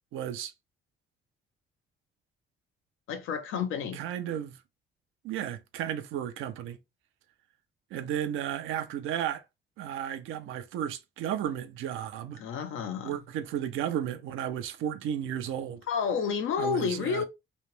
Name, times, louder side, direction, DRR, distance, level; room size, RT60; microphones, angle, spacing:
voice 1, 0.1-0.5 3.9-4.6 5.2-6.8 7.9-9.4 9.8-12.4 13.0-15.8 16.6-17.2, right 10 dB, 90° right, 0.6 m, -33 dB
voice 2, 3.1-4.0 12.4-13.1 15.9-17.2, left 6 dB, 85° left, 0.8 m, -30 dB
3.2 x 2.9 x 3.1 m
cardioid pair, 90°, 20 cm